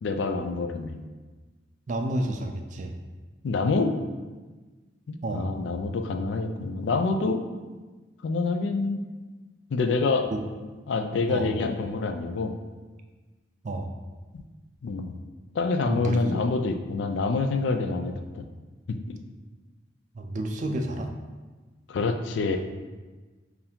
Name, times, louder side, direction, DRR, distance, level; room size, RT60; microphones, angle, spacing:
voice 1, 0.0-1.0 3.4-3.9 5.1-7.4 8.2-9.0 9.7-10.3 10.9-12.5 14.3-14.4 14.8-15.1 15.6-18.4 18.9-19.2 21.9-22.6, left 3 dB, 70° left, 6 dB, 0.3 m, -27 dB
voice 2, 1.9-2.9 5.2-5.5 10.3-10.4 11.3-11.5 13.6-13.9 15.9-16.2 20.1-21.1, right 1 dB, 40° right, 3 dB, 0.4 m, -30 dB
4.6 x 2.7 x 3.5 m, 1.3 s
head